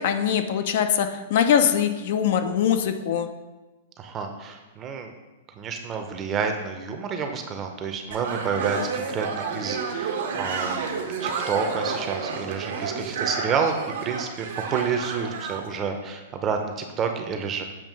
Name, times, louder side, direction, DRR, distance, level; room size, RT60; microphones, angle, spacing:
voice 1, 0.0-3.3, left 8 dB, 60° left, 8 dB, 0.5 m, -22 dB
voice 2, 4.0-5.1 5.6-10.8 11.2-13.7 14.0-17.6, right 6 dB, 25° right, 5 dB, 0.6 m, -29 dB
sound 1, 8.1-15.6, right 5 dB, 75° right, 1.0 m, -30 dB
7.3 x 2.8 x 5.3 m, 1.1 s
hypercardioid pair, 145°, 0 cm